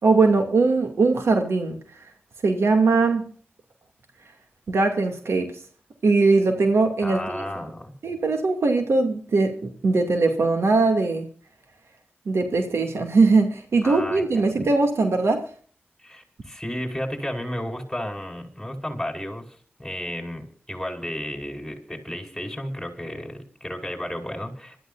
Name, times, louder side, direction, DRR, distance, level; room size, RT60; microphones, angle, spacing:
voice 1, 0.0-1.8 2.4-3.3 4.7-5.6 6.0-7.5 8.0-11.3 12.3-15.5, right 3 dB, 80° right, 2.5 m, -20 dB
voice 2, 7.0-7.9 13.8-14.6 16.0-24.8, left 1 dB, 5° left, 5.8 m, -33 dB
26.0 x 14.0 x 2.6 m
cardioid pair, 45°, 4 cm